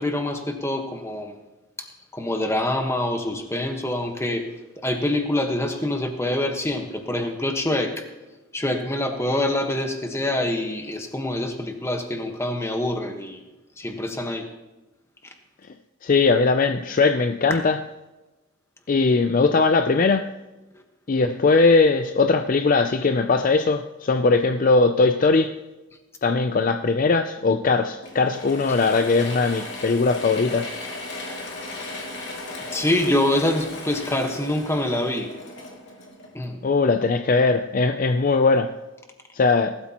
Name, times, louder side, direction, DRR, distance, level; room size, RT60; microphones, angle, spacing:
voice 1, 0.0-1.4 1.8-4.5 4.8-8.0 8.5-13.4 13.8-14.5 17.5-17.6 32.7-35.3 36.3-36.6, left 1 dB, 15° left, 1.3 m, -25 dB
voice 2, 16.0-17.8 18.9-20.3 21.1-25.6 26.2-30.7 36.6-38.8 39.3-39.8, left 3 dB, 40° left, 0.4 m, -20 dB
Mechanisms / Drill, 28.0-36.6, left 2 dB, 55° left, 2.5 m, -36 dB
19.0 x 12.5 x 3.0 m
head